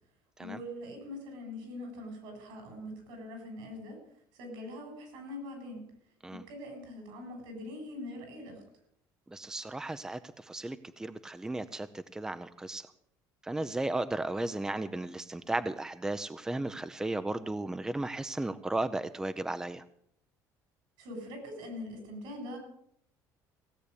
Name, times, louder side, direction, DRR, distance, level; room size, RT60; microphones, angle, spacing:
voice 1, 0.4-4.0 4.3-5.8 6.3-8.6 21.0-22.6, left 1 dB, 85° right, 4 dB, 7.5 m, -43 dB
voice 2, 9.3-12.9 13.4-19.8, right 2 dB, 10° right, 11 dB, 0.6 m, -35 dB
17.0 x 8.3 x 8.3 m, 0.69 s
cardioid pair, 135°, 7 cm